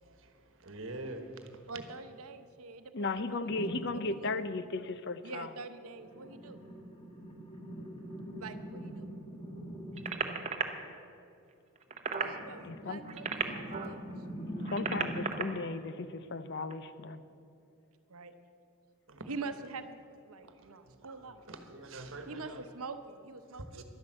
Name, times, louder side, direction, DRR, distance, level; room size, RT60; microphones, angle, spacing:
voice 1, 0.6-1.2 19.1-19.3 21.5-22.6 23.7-23.8, right 2 dB, 65° right, 6 dB, 1.3 m, -43 dB
voice 2, 1.7-4.4 5.2-6.6 8.4-9.1 12.1-14.0 18.1-18.3 19.3-20.0 20.2-21.5 22.3-23.8, right 4 dB, 80° right, 9 dB, 0.8 m, -45 dB
voice 3, 2.9-5.5 12.6-13.1 14.6-17.2, left 3 dB, 50° left, 12 dB, 0.6 m, -36 dB
sound 1, 3.5-4.2 5.9-10.5 11.9-15.5, equal, 20° left, 1.6 m, -43 dB
sound 2, 10.0-10.6 11.8-12.3 13.0-13.9 14.6-15.4 16.6-16.8, right 5 dB, 30° right, 0.8 m, -34 dB
11.5 x 10.5 x 7.6 m, 2.6 s
head